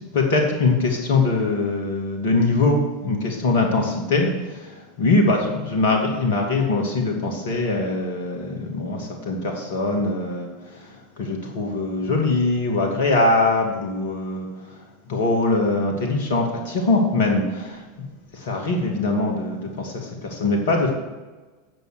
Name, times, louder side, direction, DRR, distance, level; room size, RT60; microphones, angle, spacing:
voice 1, 0.1-10.5 10.9-14.5 15.1-17.8 18.3-20.9, left 3 dB, 60° left, 2 dB, 2.4 m, -22 dB
9.2 x 7.4 x 6.5 m, 1.3 s
figure-of-eight pair, 80°, 0 cm